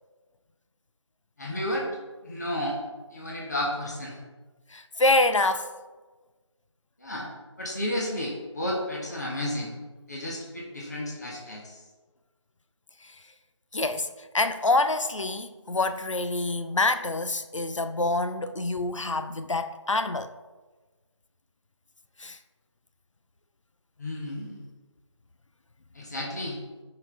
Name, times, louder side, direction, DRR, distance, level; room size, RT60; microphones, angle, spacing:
voice 1, 1.4-1.9 2.2-2.8 3.1-4.2 7.0-7.3 7.6-9.7 10.1-11.8 24.0-24.6 25.9-26.6, left 1 dB, 35° left, 1.5 m, -32 dB
voice 2, 4.7-5.7 13.7-14.1 14.3-20.3 22.2-22.4, left 2 dB, 80° left, 0.6 m, -26 dB
12.0 x 5.8 x 3.5 m
figure-of-eight pair, 170°, 16 cm